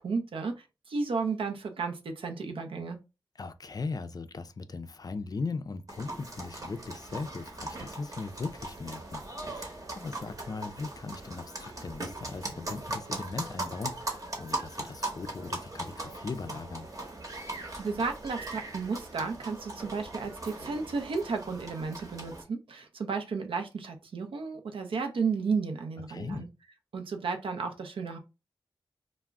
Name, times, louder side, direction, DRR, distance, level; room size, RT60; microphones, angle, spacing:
voice 1, 0.0-3.0 17.5-26.5 26.9-28.2, right 4 dB, 80° right, 0.5 m, -33 dB
voice 2, 3.4-16.9 26.1-26.5, left 4 dB, 45° left, 0.3 m, -39 dB
sound 1, 5.9-22.4, right 2 dB, 40° right, 0.9 m, -39 dB
2.3 x 2.0 x 3.4 m
cardioid pair, 50°, 9 cm